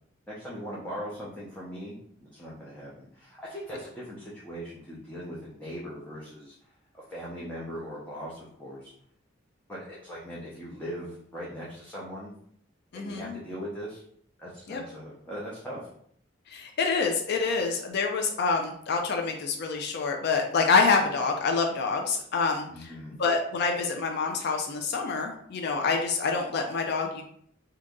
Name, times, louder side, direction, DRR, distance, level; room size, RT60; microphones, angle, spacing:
voice 1, 0.3-6.6 7.1-8.9 9.7-12.3 12.9-14.0 14.4-15.8 22.7-23.1, equal, 10° left, -7 dB, 0.6 m, -40 dB
voice 2, 12.9-13.3 14.7-14.8 16.5-22.9 23.2-27.2, left 4 dB, 55° left, 2 dB, 0.4 m, -27 dB
2.8 x 2.5 x 3.5 m, 0.64 s
head